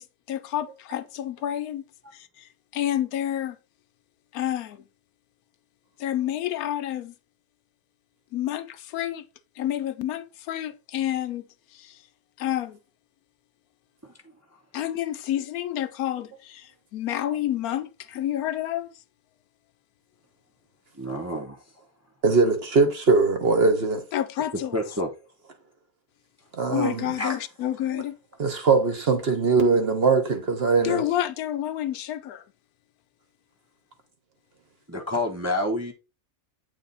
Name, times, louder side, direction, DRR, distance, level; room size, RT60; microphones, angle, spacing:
voice 1, 0.0-1.8 2.1-3.6 4.3-4.8 6.0-7.1 8.3-9.2 9.6-11.5 11.7-12.0 12.4-12.8 14.7-18.9 24.1-24.7 26.7-28.2 30.8-32.4, left 12 dB, 80° left, 1.1 m, -29 dB
voice 2, 20.9-21.6 24.7-25.1 27.2-27.4 34.9-35.9, left 1 dB, 15° right, 0.6 m, -28 dB
voice 3, 22.2-24.0 26.5-27.1 28.4-31.0, right 4 dB, 50° right, 1.0 m, -21 dB
8.2 x 3.4 x 4.0 m
omnidirectional pair, 1.6 m